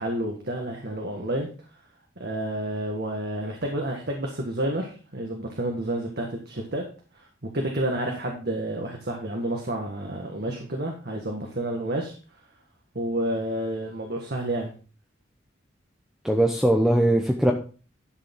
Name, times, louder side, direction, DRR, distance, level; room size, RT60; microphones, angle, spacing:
voice 1, 0.0-1.5 2.2-6.8 7.1-7.3 7.5-12.2 12.9-14.7, right 1 dB, 55° right, 1 dB, 1.5 m, -30 dB
voice 2, 16.2-17.5, right 1 dB, ahead, 2 dB, 0.8 m, -20 dB
11.5 x 6.7 x 3.7 m, 0.37 s
head